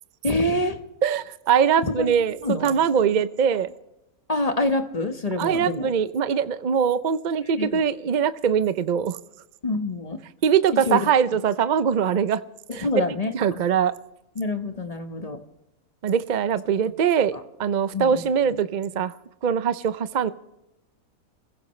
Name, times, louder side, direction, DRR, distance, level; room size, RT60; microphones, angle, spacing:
voice 1, 0.2-0.8 1.9-2.1 2.4-2.7 4.3-5.9 7.6-7.8 9.6-10.2 10.9-11.1 12.7-13.6 14.4-15.4 17.3-17.4 17.9-18.6, left 2 dB, 30° left, 7 dB, 1.1 m, -26 dB
voice 2, 1.0-3.7 5.4-9.2 10.4-12.4 12.7-12.9 13.3-13.9 16.0-17.3 17.6-19.1 19.4-20.3, right 7 dB, 60° right, 14 dB, 0.5 m, -22 dB
26.5 x 16.0 x 3.2 m, 0.91 s
omnidirectional pair, 1.5 m